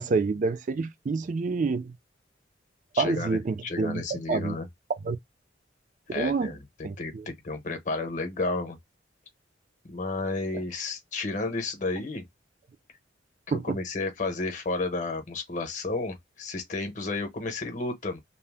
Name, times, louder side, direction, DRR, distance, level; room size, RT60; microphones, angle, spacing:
voice 1, 0.0-1.9 3.0-4.6 5.0-5.2 6.1-6.5 6.8-7.3 13.5-13.8, right 4 dB, 45° right, 0.3 m, -28 dB
voice 2, 2.9-4.7 6.1-8.8 9.9-12.2 13.5-18.2, left 3 dB, 40° left, 0.8 m, -32 dB
2.7 x 2.0 x 3.3 m
head